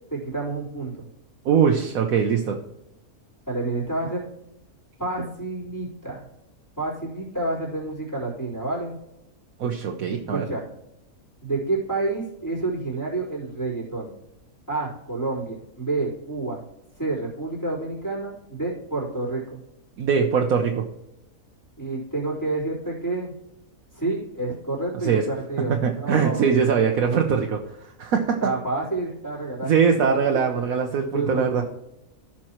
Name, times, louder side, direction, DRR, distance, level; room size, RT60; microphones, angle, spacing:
voice 1, 0.1-1.1 3.5-4.2 5.0-6.3 6.8-8.9 10.3-10.7 11.4-14.1 14.7-16.6 17.0-19.6 21.8-23.3 23.9-26.5 28.4-29.9 30.5-30.6 31.1-31.6, right 2 dB, 10° left, -6 dB, 3.7 m, -29 dB
voice 2, 1.4-2.6 9.6-10.5 20.0-20.8 25.0-25.2 25.7-27.6 28.0-28.5 29.6-31.6, right 6 dB, 75° right, 3 dB, 1.2 m, -21 dB
15.0 x 6.0 x 3.0 m, 0.89 s
omnidirectional pair, 1.5 m